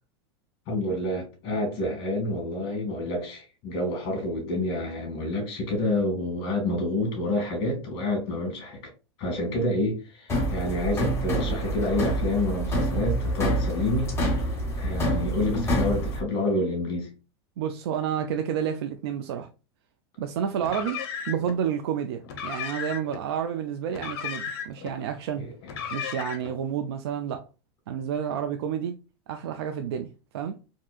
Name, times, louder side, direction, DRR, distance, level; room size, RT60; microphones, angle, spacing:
voice 1, 0.7-8.9 9.2-14.1 14.7-17.1 25.4-25.5, left 1 dB, 40° left, 1.7 m, -28 dB
sound 1, 10.3-16.2, right 1 dB, 20° left, 1.1 m, -27 dB
voice 2, 17.6-19.5 20.2-21.0 21.3-25.5 25.9-27.4 27.9-28.9 29.3-30.1 30.3-30.6, right 8 dB, 75° right, 0.4 m, -30 dB
Car, 20.6-21.6 22.2-23.2 23.9-24.9 25.6-26.6, left 7 dB, 65° left, 0.7 m, -35 dB
3.5 x 2.6 x 2.3 m
supercardioid pair, 125°, 13 cm